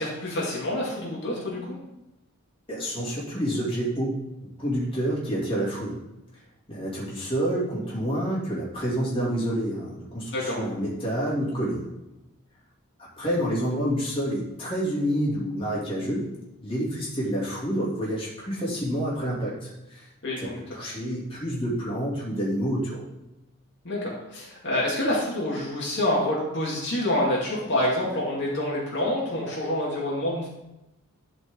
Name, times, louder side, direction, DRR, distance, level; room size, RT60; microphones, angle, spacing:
voice 1, 0.0-1.8 10.3-10.7 20.2-20.6 23.8-30.5, left 1 dB, 55° left, -5 dB, 2.2 m, -27 dB
voice 2, 2.7-4.2 4.6-6.0 6.7-11.9 13.2-16.2 16.6-20.1 20.4-23.0, equal, 25° left, -6 dB, 2.6 m, -28 dB
11.5 x 5.1 x 3.7 m, 0.95 s
head